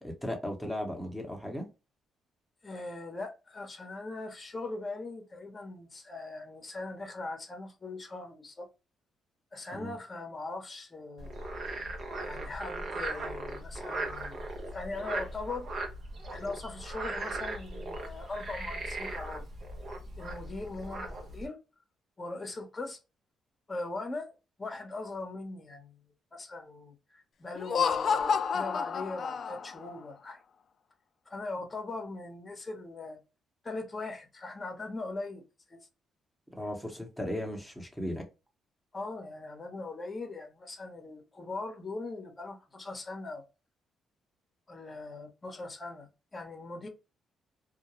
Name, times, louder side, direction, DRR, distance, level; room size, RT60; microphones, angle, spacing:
voice 1, 0.0-1.7 9.7-10.0 36.5-38.3, equal, ahead, 1.0 m, -36 dB
voice 2, 2.6-8.7 9.5-11.3 12.2-14.4 14.7-15.7 16.3-19.5 20.2-21.6 22.2-23.0 23.7-26.0 26.3-30.4 31.3-33.2 33.6-35.4 35.7-35.8 38.9-43.5 44.7-46.9, left 3 dB, 25° left, 0.9 m, -40 dB
Frog, 11.2-21.5, right 2 dB, 55° right, 0.8 m, -38 dB
Laughter, 27.5-29.9, left 6 dB, 50° left, 0.3 m, -29 dB
2.3 x 2.2 x 2.9 m
cardioid pair, 90°, 0 cm